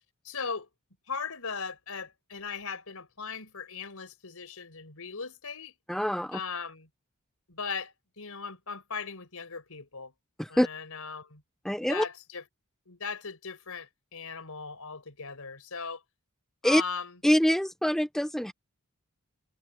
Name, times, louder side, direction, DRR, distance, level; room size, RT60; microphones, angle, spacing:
voice 1, 0.2-0.7 1.1-5.7 6.3-6.9 7.5-10.1 10.5-11.4 11.8-12.4 12.9-16.0 16.6-17.2, left 5 dB, 75° left, 4.9 m, -38 dB
voice 2, 5.9-6.4 10.4-10.7 11.6-12.0 16.6-16.8 17.2-18.5, equal, ahead, 0.5 m, -25 dB
head